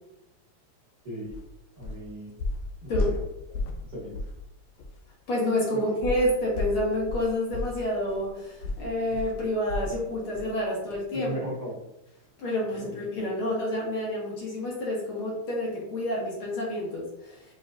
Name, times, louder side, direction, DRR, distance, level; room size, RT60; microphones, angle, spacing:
sound 1, 1.3-1.4 1.8-2.1 2.4-3.9 4.1-4.4 4.8-4.9 6.0-10.0 10.3-10.5 10.9-11.0, left 2 dB, 80° left, 1.5 m, -33 dB
voice 1, 1.8-2.3 2.8-2.9 3.8-4.1 5.7-5.8 11.1-11.7 12.8-12.9, right 1 dB, 40° right, -8 dB, 1.5 m, -36 dB
voice 2, 5.3-11.3 12.4-17.4, left 1 dB, 55° left, -4 dB, 1.8 m, -29 dB
6.3 x 3.3 x 2.5 m, 0.87 s
omnidirectional pair, 3.4 m